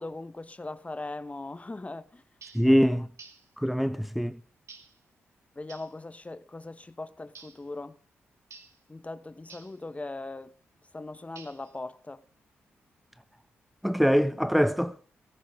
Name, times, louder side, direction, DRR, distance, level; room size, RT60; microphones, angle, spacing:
voice 1, 0.0-2.2 2.7-3.0 5.6-8.0 8.9-10.5 10.9-12.2, left 2 dB, 25° left, 1.0 m, -40 dB
sound 1, 2.4-2.7 3.2-3.5 4.7-5.0 5.7-6.0 7.3-7.6 8.5-8.8 9.5-9.8 11.4-11.8, right 5 dB, 65° right, 2.4 m, -50 dB
voice 2, 2.5-3.1 3.6-4.4 13.8-14.9, equal, ahead, 0.9 m, -23 dB
15.5 x 14.5 x 3.6 m
supercardioid pair, 45°, 5 cm